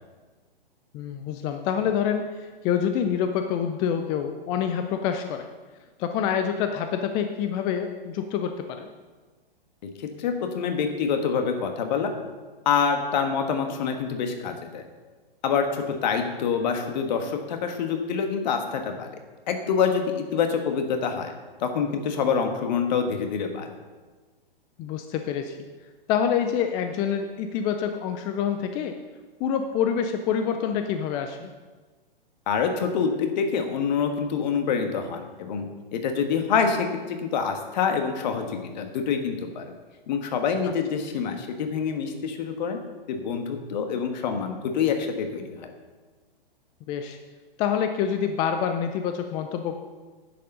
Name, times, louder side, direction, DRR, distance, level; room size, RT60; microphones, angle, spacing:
voice 1, 0.9-5.5 6.0-8.9 24.8-25.6 26.1-29.0 29.4-31.5 46.9-47.2 47.6-49.8, left 8 dB, 15° left, 7 dB, 0.3 m, -26 dB
voice 2, 9.8-12.1 12.6-14.8 15.4-19.1 19.5-21.3 21.6-23.7 32.5-35.7 35.9-39.7 40.1-42.8 43.1-45.7, left 6 dB, 50° left, 5 dB, 1.5 m, -26 dB
10.0 x 7.4 x 5.4 m, 1.3 s
figure-of-eight pair, 115°, 29 cm